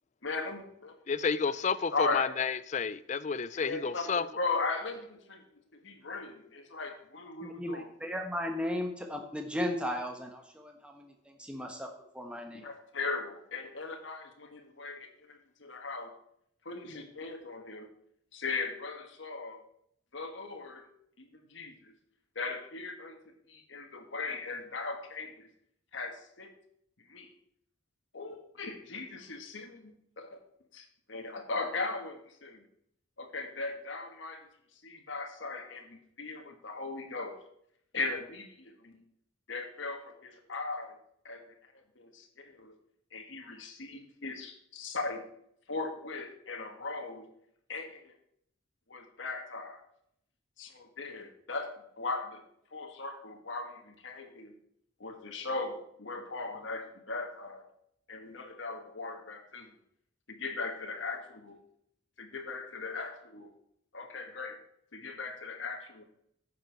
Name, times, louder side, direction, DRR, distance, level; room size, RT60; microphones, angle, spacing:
voice 1, 0.2-0.9 1.9-2.3 3.5-5.4 5.8-7.9 12.6-16.1 16.6-17.9 18.3-19.6 20.1-20.9 21.2-21.7 22.3-23.2 23.5-25.5 25.9-26.5 27.1-27.3 28.1-30.4 30.7-32.6 33.2-34.5 34.8-37.4 37.9-39.0 39.5-40.9 41.2-41.4 41.7-42.7 43.1-45.2 45.7-47.2 47.7-48.1 48.9-49.8 50.6-51.7 52.0-52.4 52.7-54.5 55.0-57.6 58.1-59.7 60.4-61.5 62.2-63.5 63.9-64.6 64.9-66.0, left 3 dB, 75° left, 3 dB, 1.4 m, -38 dB
voice 2, 1.1-4.2, left 5 dB, 35° left, 15 dB, 0.4 m, -31 dB
voice 3, 7.4-12.7, left 1 dB, 5° right, 3 dB, 1.2 m, -36 dB
9.6 x 6.9 x 4.6 m, 0.71 s
head